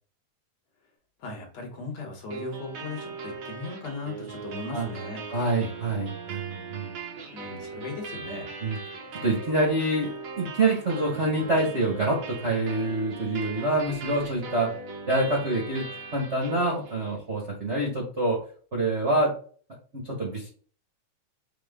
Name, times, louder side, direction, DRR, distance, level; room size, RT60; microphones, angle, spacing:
voice 1, 1.2-5.2 7.3-8.5, left 3 dB, 65° left, 2 dB, 2.0 m, -37 dB
sound 1, 2.3-17.3, right 4 dB, 60° right, 1.4 m, -39 dB
voice 2, 5.3-6.9 8.6-8.8 9.1-10.1 10.4-14.7 15.1-15.9 16.1-18.4 18.7-19.3 19.9-20.5, right 2 dB, 80° right, -3 dB, 0.6 m, -26 dB
6.0 x 2.2 x 3.5 m, 0.43 s
omnidirectional pair, 3.6 m